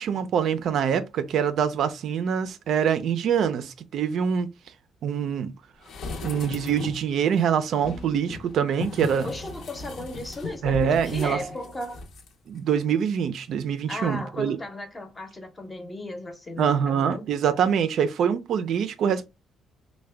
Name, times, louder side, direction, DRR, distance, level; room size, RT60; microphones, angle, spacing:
voice 1, 0.0-4.5 5.0-5.5 6.2-9.3 10.6-11.4 12.5-14.6 16.6-19.3, right 7 dB, 60° right, 0.4 m, -24 dB
sound 1, 5.8-7.1 7.8-12.3 12.6-12.7, left 3 dB, 60° left, 0.6 m, -37 dB
voice 2, 9.2-12.0 13.9-17.2, left 1 dB, 15° left, 0.7 m, -36 dB
3.5 x 2.1 x 3.2 m
cardioid pair, 150°, 0 cm